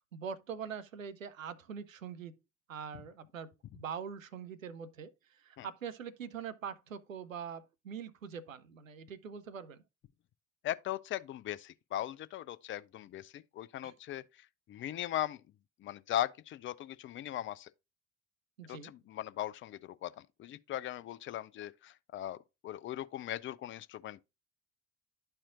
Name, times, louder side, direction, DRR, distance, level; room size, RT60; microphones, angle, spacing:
voice 1, 0.1-2.3 2.7-9.8 13.8-13.9 18.6-18.9, right 7 dB, 90° right, 0.6 m, -43 dB
voice 2, 10.6-15.4 15.8-17.7 18.7-20.1 20.4-22.4 22.6-24.2, left 12 dB, 30° left, 0.5 m, -39 dB
11.5 x 4.3 x 2.5 m
figure-of-eight pair, 55°, 38 cm